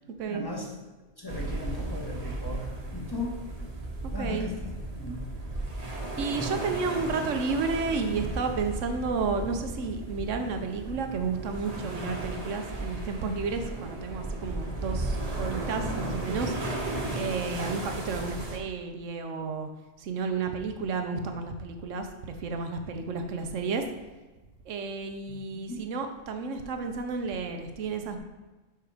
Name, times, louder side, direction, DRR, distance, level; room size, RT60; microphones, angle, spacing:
voice 1, 0.3-0.7 1.2-3.4 4.1-5.3 25.3-25.4 25.7-25.8, left 2 dB, 20° left, -2 dB, 1.2 m, -37 dB
sound 1, 1.3-18.6, right 2 dB, 35° right, 1.1 m, -35 dB
voice 2, 4.2-4.5 6.2-16.5 17.1-19.7 20.0-23.8 24.7-28.2, right 4 dB, 80° right, 6 dB, 1.1 m, -32 dB
5.8 x 5.6 x 4.9 m, 1.2 s
omnidirectional pair, 1.3 m